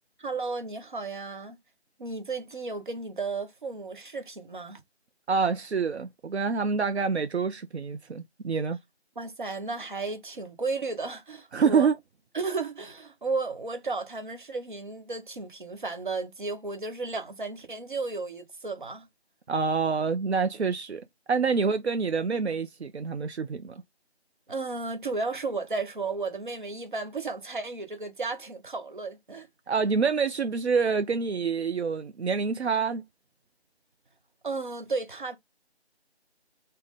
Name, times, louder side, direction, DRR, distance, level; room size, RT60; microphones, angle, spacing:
voice 1, 0.2-1.6 2.0-4.8 9.2-11.9 12.3-19.1 24.5-29.5 34.4-35.4, right 3 dB, 50° right, 0.9 m, -34 dB
voice 2, 5.3-8.8 11.5-11.9 19.5-21.0 21.3-23.8 29.7-33.0, right 5 dB, 75° right, 0.5 m, -26 dB
4.2 x 2.1 x 3.4 m
figure-of-eight pair, 165°, 33 cm